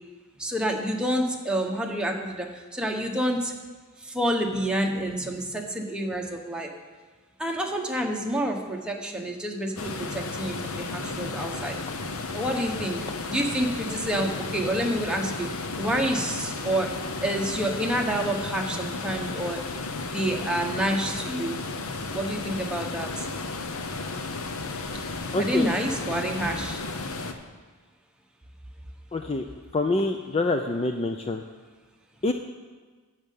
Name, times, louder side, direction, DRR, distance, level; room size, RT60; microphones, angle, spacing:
voice 1, 0.4-3.5 4.1-6.7 7.4-11.8 12.3-13.0 13.3-15.5 15.8-16.9 17.2-19.6 20.1-21.6 22.1-23.3 25.4-26.8, right 1 dB, 5° right, 0 dB, 1.2 m, -28 dB
sound 1, 9.8-27.3, left 3 dB, 65° left, 0.9 m, -33 dB
voice 2, 25.3-25.7 29.1-29.4 29.7-31.4 32.2-32.3, left 2 dB, 25° left, 5 dB, 0.5 m, -26 dB
10.5 x 6.6 x 8.4 m, 1.4 s
head